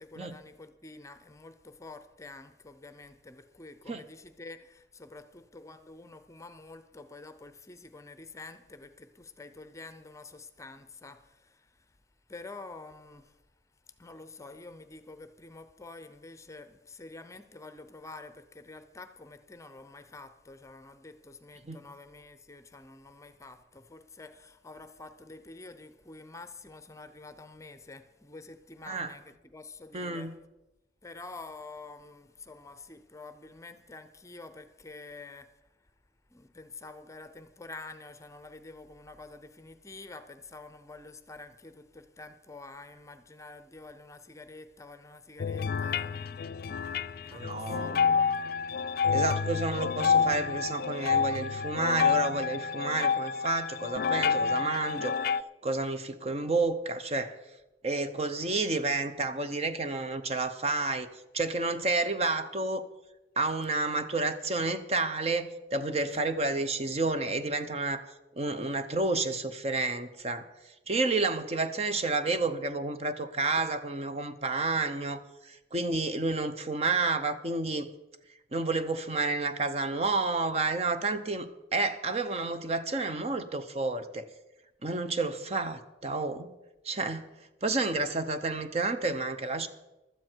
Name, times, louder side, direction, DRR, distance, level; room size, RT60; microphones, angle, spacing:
voice 1, 0.0-11.7 12.3-13.3 14.0-30.3 31.0-35.5 36.3-46.5 46.8-46.9 47.2-48.4 66.1-66.2, left 3 dB, 15° left, 0.6 m, -48 dB
voice 2, 29.9-30.3 47.3-48.2 49.1-55.2 55.6-57.3 57.8-61.1 61.3-62.8 63.4-68.0 68.4-70.5 70.9-77.9 78.5-84.3 84.8-86.5 86.8-87.3 87.6-89.7, right 3 dB, 35° right, 0.8 m, -30 dB
sound 1, 45.4-55.4, left 6 dB, 55° left, 0.4 m, -28 dB
15.5 x 12.5 x 4.6 m
head